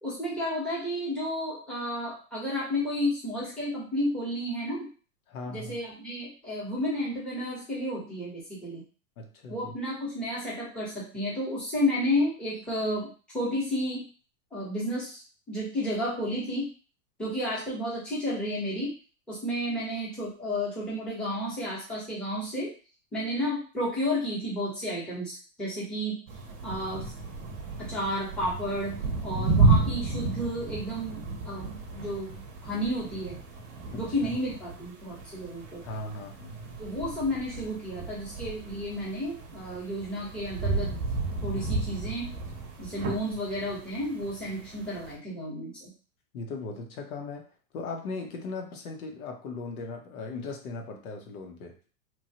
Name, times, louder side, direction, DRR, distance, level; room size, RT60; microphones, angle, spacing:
voice 1, 0.0-4.9 5.5-8.8 9.5-13.1 13.3-14.0 14.5-15.2 15.5-16.7 17.2-18.9 19.3-22.7 23.1-26.2 26.6-27.1 27.9-33.3 33.9-35.8 36.8-40.9 41.4-42.3 42.8-45.9, left 1 dB, ahead, -8 dB, 0.9 m, -32 dB
voice 2, 5.3-5.8 9.2-9.7 33.9-34.4 35.8-36.8 46.3-47.5 47.7-51.8, left 3 dB, 80° left, 2 dB, 0.9 m, -38 dB
sound 1, 26.3-45.1, right 3 dB, 35° right, 0.8 m, -32 dB
3.0 x 2.2 x 2.8 m, 0.37 s
supercardioid pair, 150°, 43 cm